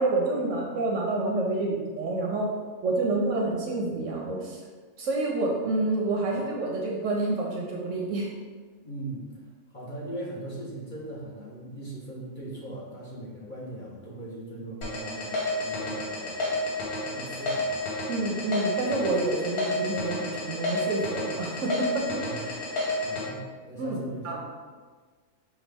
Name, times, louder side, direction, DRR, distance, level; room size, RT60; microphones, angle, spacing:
voice 1, 0.0-2.5 2.8-4.6 5.0-8.3 18.1-22.6 23.8-24.4, right 2 dB, 65° right, -1 dB, 0.9 m, -28 dB
voice 2, 8.8-9.3 9.7-16.5 17.1-17.9 22.2-22.4 23.0-24.4, right 1 dB, 40° left, -7 dB, 0.9 m, -39 dB
sound 1, 14.8-23.2, left 2 dB, 85° left, 1.4 m, -30 dB
5.6 x 2.3 x 3.3 m, 1.5 s
omnidirectional pair, 1.5 m